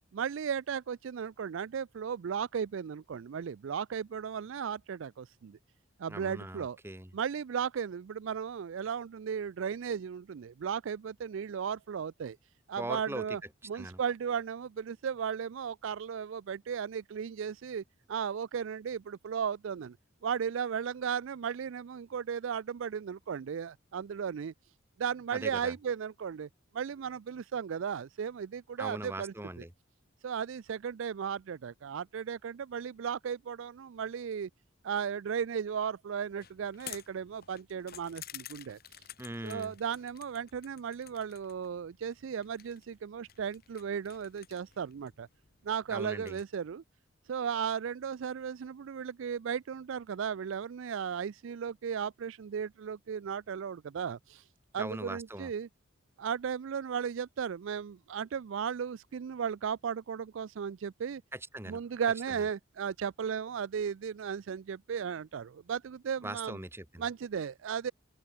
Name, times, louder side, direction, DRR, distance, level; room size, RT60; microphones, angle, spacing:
voice 1, 0.1-5.6 6.0-6.8 7.1-12.4 12.7-13.4 13.7-17.8 18.1-20.0 20.2-24.5 25.0-26.5 26.7-29.6 30.2-34.5 34.8-38.8 39.4-45.3 45.6-46.8 47.3-54.4 54.7-55.7 56.2-61.2 61.7-66.6 67.0-67.9, right 7 dB, 65° right, 0.4 m, -35 dB
voice 2, 6.1-7.1 12.8-13.2 13.7-14.0 25.3-25.7 28.8-29.7 39.2-39.7 45.9-46.4 54.8-55.5 61.3-61.8 66.2-67.0, right 1 dB, 10° right, 1.2 m, -40 dB
sound 1, 36.2-46.4, left 11 dB, 45° left, 6.0 m, -52 dB
open air
head